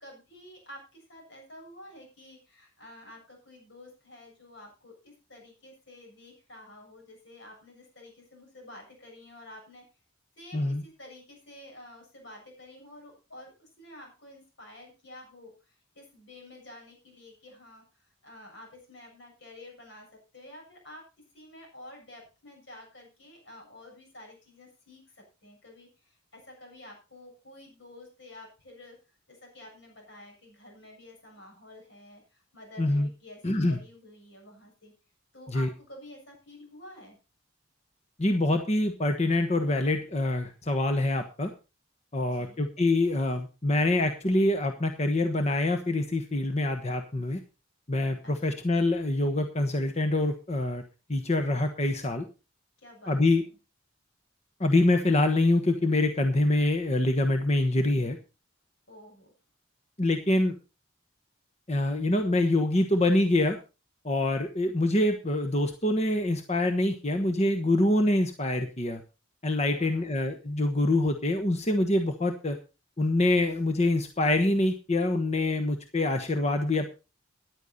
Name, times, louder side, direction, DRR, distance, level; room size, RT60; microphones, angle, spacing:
voice 1, 0.0-9.8 10.4-20.1 20.3-21.0 21.3-29.0 29.3-34.9 35.3-37.2 42.3-42.6 48.2-48.6 52.8-53.2 58.9-59.3 69.7-70.4, left 1 dB, 60° left, 1 dB, 7.3 m, -50 dB
voice 2, 10.5-10.8 32.8-33.1 33.4-33.8 35.5-35.7 38.2-41.5 42.1-47.4 47.9-50.8 51.1-52.2 53.1-53.4 54.6-58.2 60.0-60.5 61.7-63.6 64.0-69.0 69.4-72.6 73.0-76.9, left 2 dB, 30° left, 6 dB, 1.2 m, -25 dB
14.0 x 11.0 x 4.1 m, 0.31 s
head